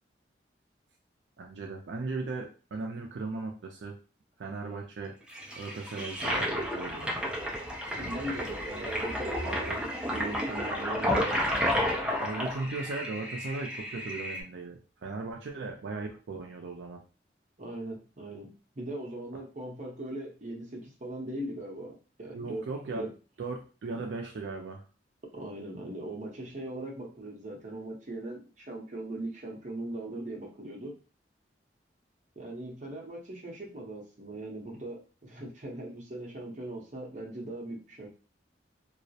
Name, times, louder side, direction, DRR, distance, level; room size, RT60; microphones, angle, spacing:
voice 1, 1.4-4.0 4.4-5.2 5.6-7.3 9.4-9.7 12.2-17.0 22.3-23.1 23.4-24.8, right 3 dB, 80° right, 1 dB, 0.4 m, -37 dB
Toilet flush, 5.3-14.4, equal, 5° right, 0.4 m, -32 dB
voice 2, 8.0-9.4 9.7-11.5 17.6-22.6 22.9-23.1 25.3-30.9 32.4-38.1, right 1 dB, 45° right, 0 dB, 0.7 m, -39 dB
2.3 x 2.0 x 2.7 m, 0.34 s
head